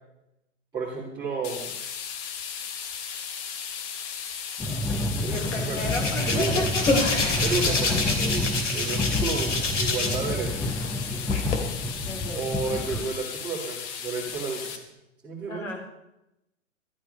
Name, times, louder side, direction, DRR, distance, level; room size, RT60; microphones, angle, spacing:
voice 1, 0.7-1.8 4.6-5.8 6.3-6.6 7.4-11.1 12.3-14.9 15.2-15.7, right 4 dB, 10° right, -8 dB, 2.6 m, -32 dB
sound 1, 1.4-14.8, left 7 dB, 30° left, 1.3 m, -36 dB
sound 2, 4.6-13.1, left 2 dB, 5° left, 0.7 m, -29 dB
voice 2, 5.3-7.0 7.7-7.9 12.1-12.4 15.5-15.8, left 2 dB, 90° left, 2 dB, 3.8 m, -33 dB
Hands, 5.3-10.3 10.6-11.5, left 3 dB, 70° left, 3.0 m, -27 dB
13.0 x 11.0 x 5.5 m, 0.90 s
hypercardioid pair, 120°, 37 cm